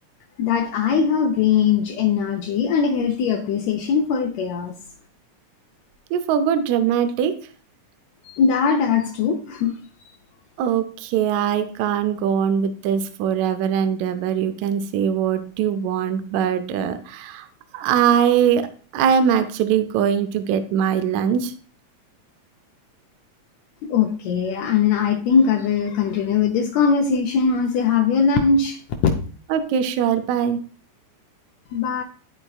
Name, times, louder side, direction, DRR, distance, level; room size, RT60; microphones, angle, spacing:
voice 1, 0.4-4.8 8.2-9.7 23.8-29.1 31.7-32.0, left 6 dB, 75° left, 3 dB, 1.7 m, -20 dB
voice 2, 6.1-7.4 10.6-17.5 17.7-18.7 18.9-21.5 29.5-30.6, right 8 dB, 75° right, 10 dB, 1.8 m, -21 dB
11.5 x 4.4 x 2.3 m, 0.41 s
omnidirectional pair, 3.6 m